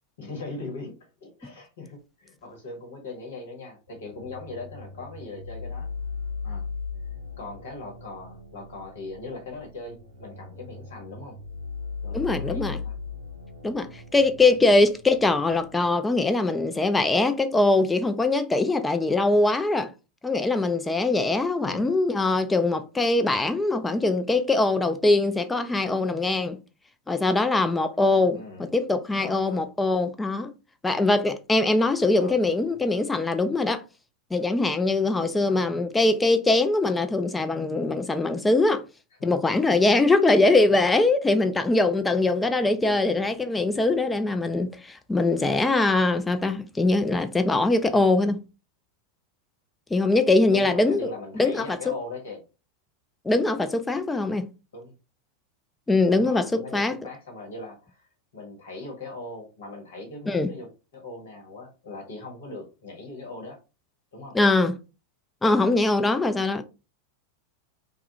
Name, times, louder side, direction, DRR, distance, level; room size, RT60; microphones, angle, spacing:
voice 1, 0.2-5.9 6.4-6.7 7.4-11.4 12.0-13.0 14.6-14.8 21.6-21.9 28.3-28.7 29.2-29.7 32.1-32.9 35.4-35.8 39.2-39.3 42.8-43.0 50.5-52.4 54.7-54.9 56.1-63.6 64.1-64.4, left 2 dB, 65° left, 1.0 m, -40 dB
sound 1, 3.9-15.8, left 5 dB, 70° right, 0.5 m, -38 dB
voice 2, 12.1-12.8 13.6-19.9 20.2-26.6 27.1-30.5 30.8-33.8 34.3-38.8 39.2-48.4 49.9-51.1 51.4-51.9 53.2-54.5 55.9-57.0 60.3-60.5 64.3-64.7 65.4-66.6, left 2 dB, 10° left, 0.3 m, -22 dB
2.3 x 2.1 x 2.8 m
figure-of-eight pair, 90°, 0 cm